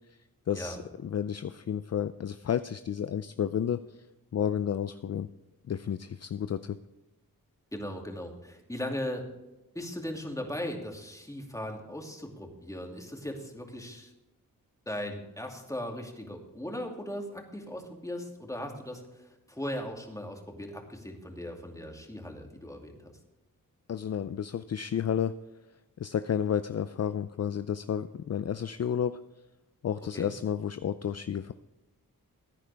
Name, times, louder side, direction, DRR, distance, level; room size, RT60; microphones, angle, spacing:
voice 1, 0.5-0.8 1.0-3.8 4.3-5.3 5.7-6.8 23.9-25.3 26.0-29.2 29.8-31.5, left 8 dB, 45° left, 12 dB, 0.5 m, -31 dB
voice 2, 7.7-9.3 9.7-14.1 14.9-23.1 30.1-30.3, left 1 dB, 10° left, 2 dB, 2.5 m, -38 dB
15.0 x 9.8 x 3.4 m, 0.99 s
cardioid pair, 65°, 35 cm